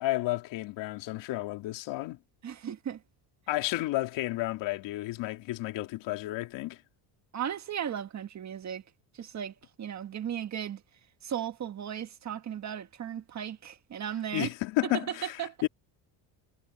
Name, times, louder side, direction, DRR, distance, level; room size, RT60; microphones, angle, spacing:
voice 1, 0.0-2.2 3.5-6.8 14.3-15.7, left 17 dB, 70° left, 3.1 m, -32 dB
voice 2, 2.4-3.0 7.3-8.8 9.1-10.8 11.2-14.5 14.8-15.6, right 9 dB, 35° right, 1.6 m, -36 dB
cardioid pair, 125°, 45 cm